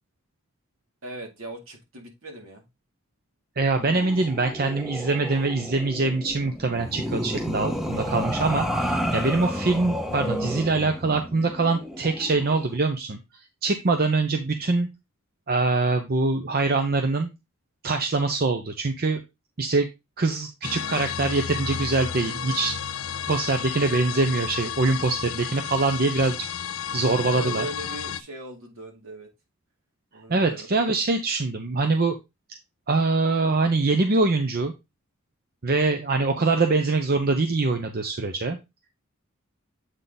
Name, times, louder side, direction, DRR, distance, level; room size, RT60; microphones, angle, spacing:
voice 1, 1.0-2.6 27.2-29.3 30.1-30.7, right 2 dB, 70° right, 2.4 m, -38 dB
voice 2, 3.6-13.2 13.6-14.9 15.5-17.3 17.8-19.2 19.6-19.9 20.2-22.8 23.3-27.7 30.3-32.2 32.9-34.7 35.6-38.6, right 3 dB, 45° right, 0.7 m, -24 dB
sound 1, 3.8-12.7, equal, ahead, 0.8 m, -31 dB
sound 2, 20.6-28.2, left 8 dB, 70° left, 0.5 m, -32 dB
8.0 x 3.8 x 4.0 m
head